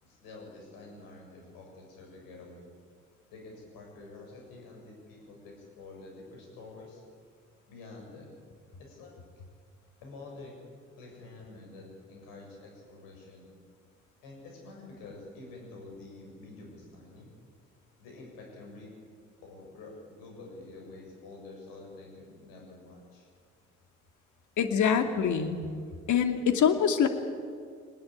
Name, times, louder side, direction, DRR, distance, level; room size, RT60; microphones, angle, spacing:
voice 1, 0.0-2.7 3.3-7.0 7.7-8.4 8.8-9.2 10.0-10.6 10.9-13.5 14.2-17.3 18.0-18.9 19.4-23.3, left 2 dB, 70° left, 0 dB, 7.4 m, -48 dB
voice 2, 24.6-25.6 26.1-27.1, left 7 dB, 55° left, 7 dB, 2.5 m, -24 dB
22.0 x 20.0 x 8.8 m, 2.1 s
hypercardioid pair, 50°, 35 cm